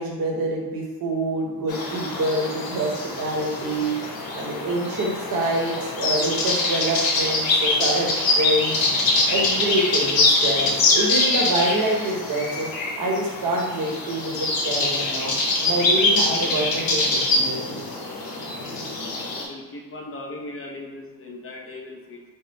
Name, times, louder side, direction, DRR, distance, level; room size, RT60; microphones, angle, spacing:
voice 1, 0.0-3.9 4.3-8.9 9.3-12.7 13.0-15.3 15.6-17.9, right 1 dB, 75° right, -1 dB, 1.2 m, -26 dB
sound 1, 1.7-19.4, left 2 dB, 80° left, 1.0 m, -24 dB
voice 2, 18.4-22.2, left 2 dB, 40° left, 0 dB, 0.7 m, -39 dB
4.8 x 2.1 x 4.5 m, 1.3 s
wide cardioid pair, 155°, 35 cm